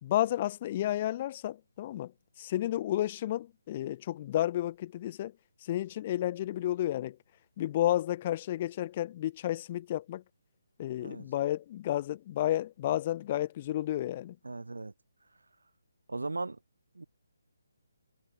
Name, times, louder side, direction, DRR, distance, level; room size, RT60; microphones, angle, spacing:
voice 1, 0.0-2.1 2.4-5.3 5.6-7.2 7.6-10.2 10.8-14.4, left 13 dB, 30° left, 1.5 m, -31 dB
voice 2, 14.4-14.9 16.1-16.6 16.9-17.0, right 3 dB, 80° right, 6.0 m, -37 dB
figure-of-eight pair, 150°, 0 cm